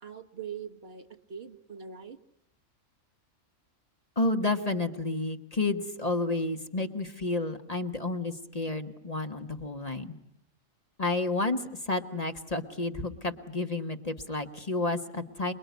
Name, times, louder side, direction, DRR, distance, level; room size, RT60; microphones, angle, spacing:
voice 1, 0.0-2.2, right 7 dB, 50° right, 7 dB, 1.4 m, -42 dB
voice 2, 4.1-10.1 11.0-15.5, left 2 dB, 30° left, 6 dB, 1.5 m, -31 dB
27.5 x 21.5 x 9.4 m, 0.76 s
omnidirectional pair, 1.4 m